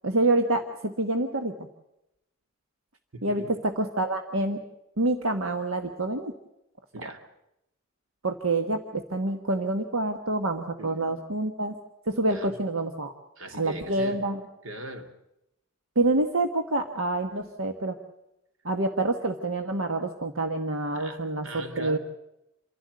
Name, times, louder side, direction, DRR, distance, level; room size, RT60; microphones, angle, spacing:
voice 1, 0.0-1.5 3.2-4.6 5.0-6.3 8.2-11.7 12.1-13.1 13.6-14.4 15.9-18.0 18.6-22.0, right 2 dB, 90° right, 5 dB, 1.4 m, -27 dB
voice 2, 3.1-3.5 6.9-7.2 10.8-11.2 12.3-12.6 13.4-14.2 14.6-15.1 20.9-22.0, right 1 dB, 70° right, 5 dB, 2.7 m, -40 dB
28.0 x 11.5 x 9.4 m, 0.86 s
head